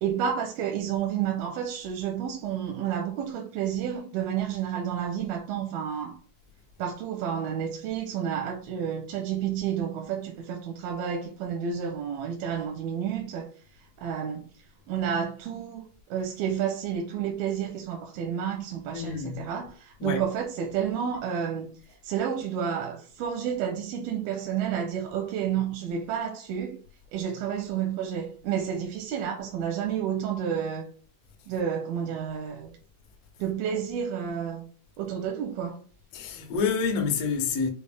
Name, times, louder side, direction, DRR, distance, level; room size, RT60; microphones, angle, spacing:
voice 1, 0.0-6.2 6.8-13.5 13.8-14.5 14.9-21.7 22.0-26.8 27.1-30.9 31.5-32.7 33.4-34.6 35.0-35.8, right 8 dB, 85° right, 2.5 m, -30 dB
voice 2, 18.9-19.4 20.0-20.2 36.1-37.7, left 5 dB, 75° left, 1.4 m, -28 dB
6.3 x 2.1 x 3.3 m
omnidirectional pair, 4.3 m